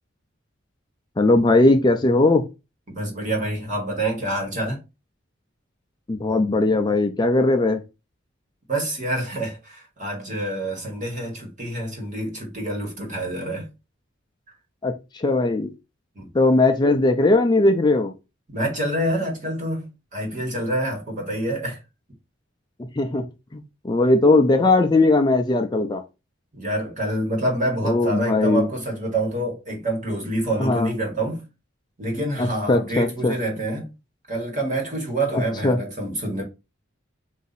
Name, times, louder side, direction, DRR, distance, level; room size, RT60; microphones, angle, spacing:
voice 1, 1.2-2.4 6.1-7.8 14.8-15.7 16.3-18.1 23.0-23.2 23.5-26.0 27.8-28.7 30.6-30.9 32.4-33.3 35.3-35.8, left 2 dB, 20° left, 0.4 m, -19 dB
voice 2, 2.9-4.8 8.7-13.7 16.1-16.3 18.5-21.8 26.5-31.4 32.0-33.9 34.3-36.4, right 1 dB, 40° right, 1.5 m, -27 dB
4.0 x 2.7 x 4.0 m
head